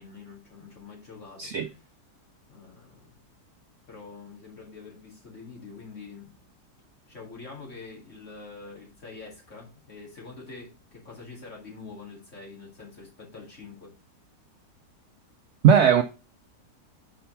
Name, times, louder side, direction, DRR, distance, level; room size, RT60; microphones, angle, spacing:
voice 1, 0.0-1.8 2.5-3.2 3.9-6.3 7.1-13.9, left 4 dB, 45° left, 2.6 m, -45 dB
voice 2, 15.6-16.0, right 7 dB, 80° right, 0.6 m, -17 dB
5.2 x 4.3 x 5.6 m
omnidirectional pair, 1.8 m